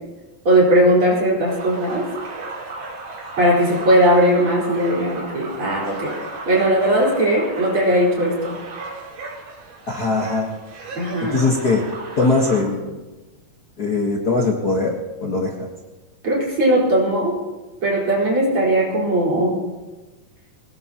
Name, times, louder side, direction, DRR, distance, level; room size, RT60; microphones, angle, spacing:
voice 1, 0.5-2.1 3.4-6.2 6.5-8.6 11.0-11.4 16.2-17.4 17.8-19.6, right 1 dB, 35° right, -5 dB, 5.2 m, -18 dB
sound 1, 1.5-12.6, right 3 dB, 65° right, 4.0 m, -35 dB
voice 2, 9.9-10.5 11.2-11.8 12.2-13.0 13.8-15.7, left 3 dB, 90° left, -1 dB, 0.8 m, -21 dB
22.5 x 19.0 x 3.0 m, 1.2 s
omnidirectional pair, 4.1 m